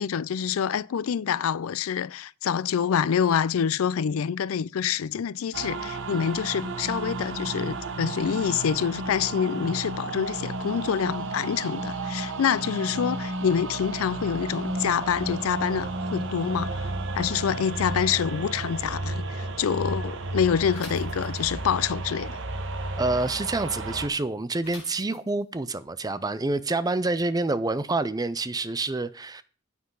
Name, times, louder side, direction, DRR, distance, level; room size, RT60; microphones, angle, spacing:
voice 1, 0.0-22.4, left 8 dB, 90° left, 0.4 m, -26 dB
sound 1, 5.5-24.1, right 2 dB, 65° right, 1.1 m, -33 dB
Bicycle / Mechanisms, 20.7-21.7 24.6-25.6, left 4 dB, 35° left, 4.7 m, -46 dB
voice 2, 23.0-29.4, right 2 dB, 20° right, 0.5 m, -27 dB
9.5 x 8.5 x 3.9 m
head